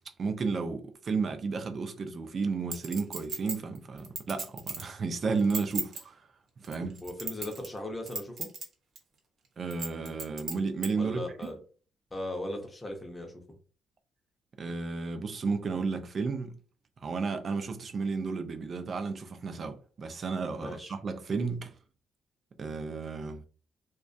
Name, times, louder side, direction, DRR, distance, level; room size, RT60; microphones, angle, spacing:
voice 1, 0.2-6.2 6.6-7.0 9.6-11.5 14.6-16.6 17.0-21.7 22.6-23.4, right 4 dB, 40° right, 0.4 m, -33 dB
Chink clink, 2.7-4.9 5.4-6.0 6.6-7.8 8.1-8.6 9.0-9.1 9.7-10.9 11.4-11.5, right 3 dB, 55° right, 0.8 m, -36 dB
voice 2, 7.0-8.5 11.0-11.6 12.1-13.3 20.6-20.9, left 1 dB, 15° left, 0.6 m, -38 dB
2.3 x 2.2 x 2.5 m
cardioid pair, 125°, 0 cm